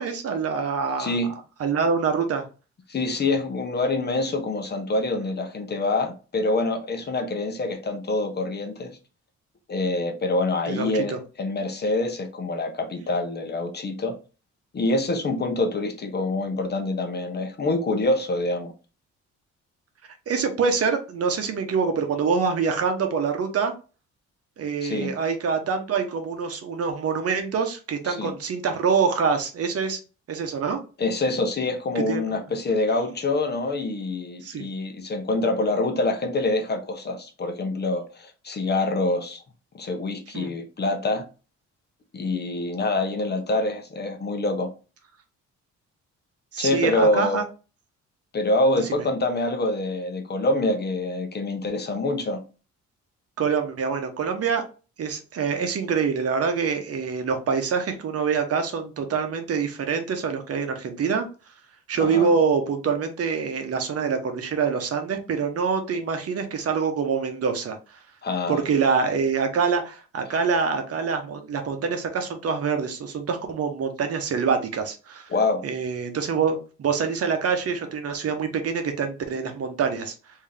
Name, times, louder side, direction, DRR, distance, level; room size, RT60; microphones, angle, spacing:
voice 1, 0.0-1.2 1.6-2.5 10.7-11.2 20.3-23.7 24.6-30.0 30.3-30.8 32.1-32.2 34.4-34.7 40.3-40.5 46.5-47.4 48.8-49.1 53.4-54.6 55.0-61.3 61.9-68.0 68.5-75.3 75.6-80.1, right 5 dB, 50° right, 0.9 m, -25 dB
voice 2, 1.0-1.3 2.9-9.0 9.7-14.2 14.7-18.7 24.8-25.1 28.1-28.3 31.0-39.4 39.7-41.2 42.1-44.7 46.6-47.4 48.3-52.4 62.0-62.3 68.2-68.6 75.3-75.6, left 2 dB, 35° left, 0.8 m, -26 dB
3.5 x 2.8 x 3.3 m
cardioid pair, 90°, 30 cm